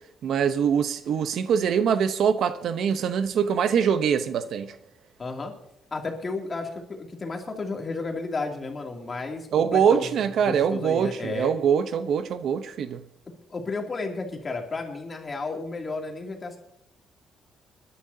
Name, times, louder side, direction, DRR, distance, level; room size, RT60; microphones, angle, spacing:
voice 1, 0.2-4.8 9.5-13.0, right 7 dB, 70° right, 0.8 m, -23 dB
voice 2, 5.2-5.5 5.9-10.1 10.5-11.5 13.5-16.6, left 3 dB, 35° left, 2.7 m, -32 dB
27.0 x 11.0 x 2.8 m
cardioid pair, 90°, 0 cm